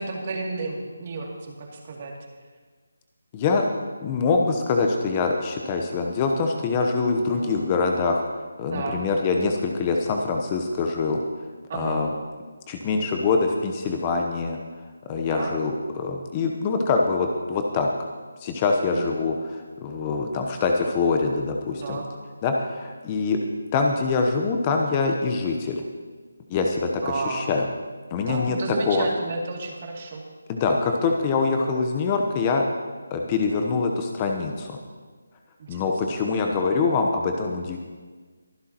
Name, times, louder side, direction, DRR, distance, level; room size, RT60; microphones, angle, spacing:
voice 1, 0.0-2.1 7.3-7.5 8.7-9.0 11.7-12.0 15.3-15.5 18.9-19.1 21.8-22.1 27.0-27.5 28.3-30.2 35.6-35.8, right 3 dB, 40° right, -1 dB, 2.7 m, -31 dB
voice 2, 3.3-3.6 4.0-8.2 8.6-11.2 11.7-12.1 12.7-14.6 15.1-17.9 18.4-22.0 22.4-23.4 23.7-25.8 26.5-27.7 28.1-28.6 28.9-29.1 30.5-32.6 33.1-34.8 35.7-37.8, left 4 dB, 20° left, 2 dB, 1.0 m, -24 dB
23.0 x 11.5 x 3.0 m, 1.4 s
figure-of-eight pair, 160°, 0 cm